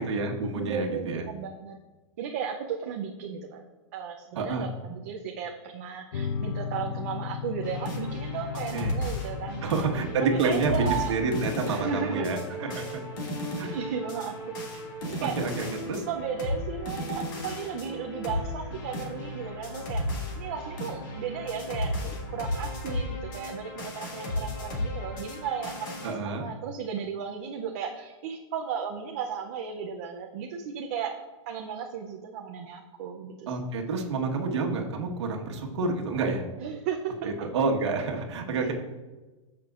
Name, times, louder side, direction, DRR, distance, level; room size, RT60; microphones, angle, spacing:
voice 1, 0.0-1.2 4.3-4.7 8.7-8.9 9.6-12.9 13.6-13.8 15.4-16.0 26.0-26.4 33.5-36.4 37.2-38.7, right 3 dB, 60° right, 1 dB, 1.3 m, -28 dB
voice 2, 0.5-1.8 2.2-3.6 3.9-11.2 11.7-12.3 12.6-12.9 13.6-14.3 14.6-15.4 16.1-20.0 20.3-31.2 31.5-33.5 36.6-37.5, right 7 dB, 30° right, 2 dB, 0.5 m, -35 dB
sound 1, 6.1-15.1, left 7 dB, 70° left, 0.7 m, -38 dB
sound 2, 7.6-26.1, left 1 dB, 40° left, 1.8 m, -35 dB
14.0 x 5.9 x 2.4 m, 1.2 s
supercardioid pair, 175°, 17 cm